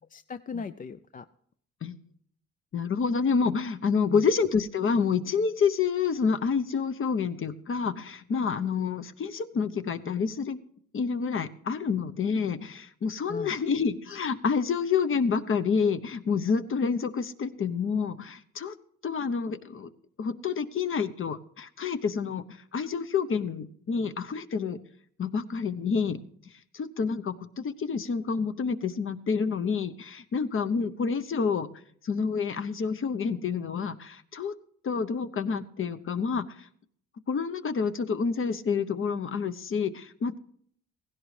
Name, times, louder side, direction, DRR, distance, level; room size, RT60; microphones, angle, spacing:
voice 1, 0.1-1.3 4.1-4.3 13.2-13.6, left 6 dB, 30° left, 12 dB, 0.4 m, -38 dB
voice 2, 2.7-10.6 10.9-18.7 19.0-19.9 20.2-22.4 22.7-24.8 25.2-26.2 26.7-31.7 32.0-34.5 34.8-36.7 37.3-40.4, left 5 dB, 45° left, 10 dB, 0.9 m, -28 dB
16.0 x 16.0 x 3.3 m, 0.65 s
cardioid pair, 90°, 30 cm